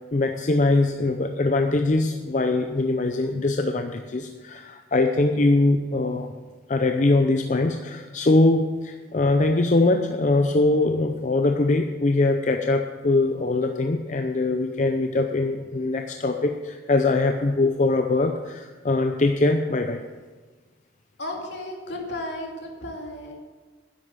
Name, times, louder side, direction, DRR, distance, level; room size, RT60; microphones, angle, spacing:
voice 1, 0.1-6.3 6.7-20.0, left 2 dB, 40° left, 5 dB, 0.5 m, -22 dB
voice 2, 21.2-23.4, left 1 dB, 75° left, 0 dB, 2.5 m, -34 dB
10.5 x 7.9 x 7.5 m, 1.3 s
head